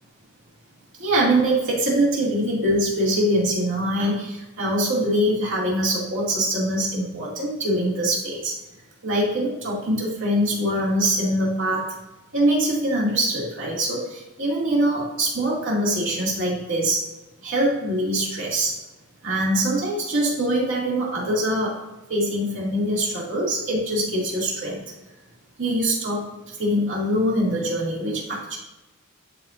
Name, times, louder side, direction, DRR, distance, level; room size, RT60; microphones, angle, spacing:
voice 1, 1.0-8.6 9.0-12.0 12.3-17.0 17.4-18.7 19.2-21.8 22.1-24.8 25.6-28.6, right 1 dB, 60° right, -5 dB, 2.4 m, -23 dB
11.5 x 4.3 x 2.5 m, 1.0 s
head